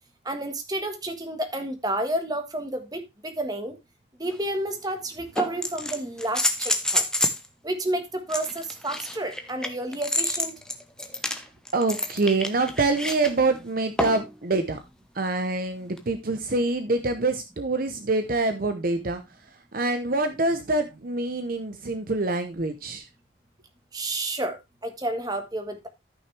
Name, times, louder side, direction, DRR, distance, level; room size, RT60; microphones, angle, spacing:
voice 1, 0.2-3.7 4.2-7.0 7.6-10.5 23.9-24.6 24.8-25.9, right 1 dB, 20° right, 1.4 m, -30 dB
sound 1, 4.3-4.4 5.4-7.5 8.3-13.3 14.0-14.3 16.0-16.1, left 1 dB, 5° left, 0.8 m, -28 dB
voice 2, 11.7-14.8 15.1-19.2 19.7-23.1, right 2 dB, 45° right, 0.8 m, -25 dB
13.5 x 5.9 x 3.3 m
head